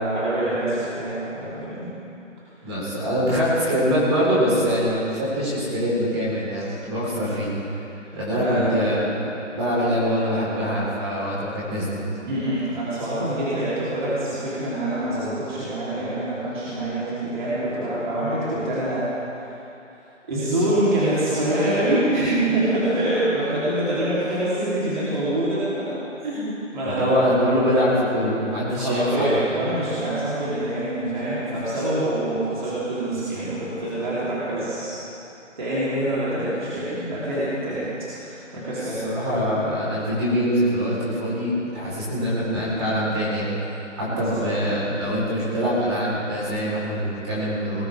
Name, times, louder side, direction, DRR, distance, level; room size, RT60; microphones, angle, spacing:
voice 1, 0.0-1.9 8.3-8.9 12.3-19.1 20.3-25.9 26.2-27.3 28.7-34.9 35.6-37.9 38.1-39.0 44.0-44.4, right 1 dB, 35° right, -11 dB, 3.8 m, -25 dB
voice 2, 2.6-7.5 8.1-12.0 27.0-29.6 39.0-43.5 44.0-47.8, equal, 20° right, -8 dB, 4.4 m, -23 dB
20.0 x 15.5 x 3.7 m, 2.8 s
figure-of-eight pair, 165°, 38 cm